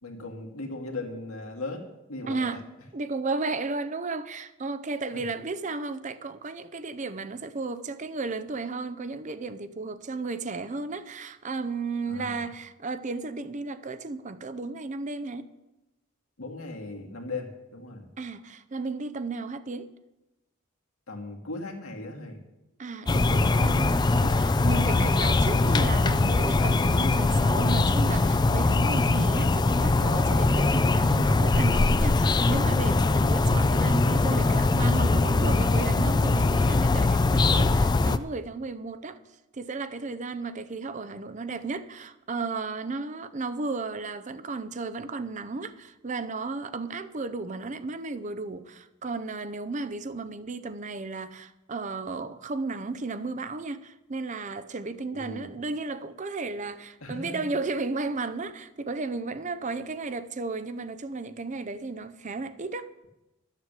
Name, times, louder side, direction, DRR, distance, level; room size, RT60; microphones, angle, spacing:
voice 1, 0.0-2.6 5.1-5.2 12.1-12.4 16.4-18.1 21.1-22.4 33.1-33.4 55.1-55.5 57.0-57.5, left 2 dB, 85° left, 2.2 m, -38 dB
voice 2, 2.3-2.6 2.9-15.5 18.2-19.9 22.8-39.2 39.5-62.9, right 3 dB, 35° right, 0.6 m, -34 dB
sound 1, 23.1-38.2, left 3 dB, 20° left, 0.3 m, -22 dB
12.0 x 7.4 x 8.3 m
head